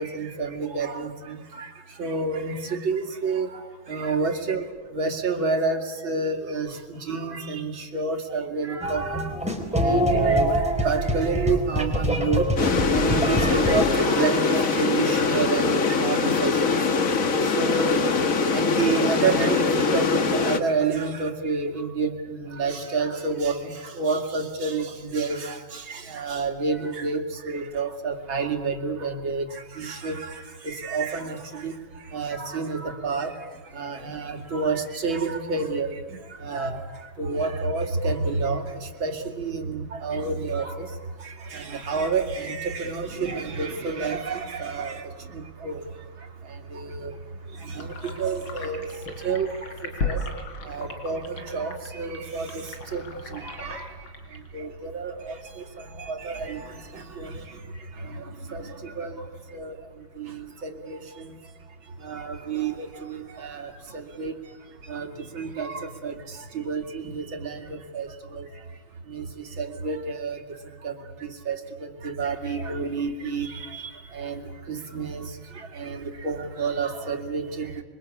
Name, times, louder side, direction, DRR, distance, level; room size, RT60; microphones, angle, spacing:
voice 1, 0.0-1.7 2.0-3.5 3.9-4.6 4.9-6.7 7.1-9.2 9.8-12.4 12.9-16.8 17.6-18.0 18.5-25.6 26.1-29.4 29.8-30.2 30.6-31.7 32.1-33.3 33.8-35.9 36.4-36.8 37.2-38.6 39.0-40.7 41.5-45.0 45.6-45.8 47.0-47.1 47.8-48.8 49.2-49.5 50.0-50.2 50.7-51.2 51.5-52.6 52.9-53.0 53.6-53.8 54.5-55.4 56.1-56.6 57.2-57.3 58.5-58.6 59.0-59.1 59.5-59.7 60.6-61.0 62.1-63.7 64.2-64.3 64.9-65.1 65.3-66.1 66.5-66.8 67.1-67.6 67.9-68.1 69.1-69.2 69.6-70.4 70.8-70.9 71.5-71.6 72.0-73.8 74.2-74.4 74.7-75.2 75.8-77.4, right 4 dB, 70° right, 4 dB, 3.2 m, -28 dB
sound 1, 8.8-13.9, right 1 dB, 5° right, 4.2 m, -24 dB
sound 2, 12.6-20.6, left 4 dB, 45° left, 1.7 m, -23 dB
sound 3, 47.8-56.1, left 3 dB, 75° left, 4.6 m, -36 dB
28.0 x 24.0 x 8.5 m, 1.2 s
omnidirectional pair, 2.3 m